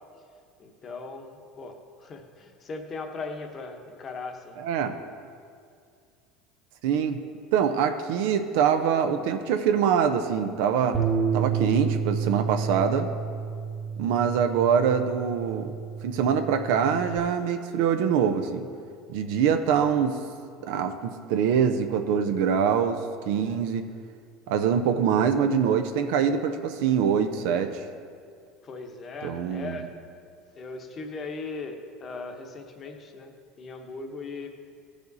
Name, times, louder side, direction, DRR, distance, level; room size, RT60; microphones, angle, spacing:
voice 1, 0.6-4.6 28.6-29.9 30.6-34.7, left 3 dB, 35° left, 5 dB, 1.0 m, -38 dB
voice 2, 4.6-4.9 6.8-7.2 7.5-11.0 11.3-13.1 14.0-15.7 16.0-18.7 19.1-20.2 20.6-23.0 23.3-23.9 24.5-27.8 29.2-29.8, right 7 dB, 75° right, 7 dB, 0.6 m, -24 dB
Bass guitar, 10.9-17.2, right 6 dB, 25° right, 1.1 m, -30 dB
14.0 x 5.0 x 4.0 m, 2.2 s
supercardioid pair, 105°, 0 cm